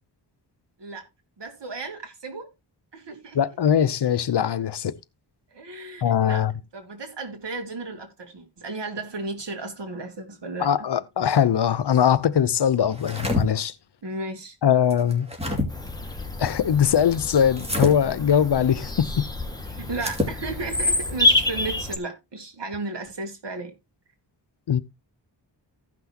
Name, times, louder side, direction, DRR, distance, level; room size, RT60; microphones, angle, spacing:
voice 1, 1.4-2.5 2.9-3.4 5.5-6.5 6.7-10.9 14.0-14.6 19.8-23.7, right 3 dB, 70° right, 2.7 m, -34 dB
voice 2, 3.3-4.9 6.0-6.5 10.6-13.7 14.6-15.3 16.4-19.3 24.7-24.8, left 8 dB, 65° left, 0.7 m, -21 dB
sound 1, 12.9-13.4 14.9-15.7 17.6-17.9 19.9-20.4, left 2 dB, 15° right, 2.6 m, -26 dB
Bird vocalization bird call bird song, 15.7-22.0, left 2 dB, 10° left, 1.6 m, -27 dB
15.5 x 6.1 x 2.9 m
wide cardioid pair, 120°, 44 cm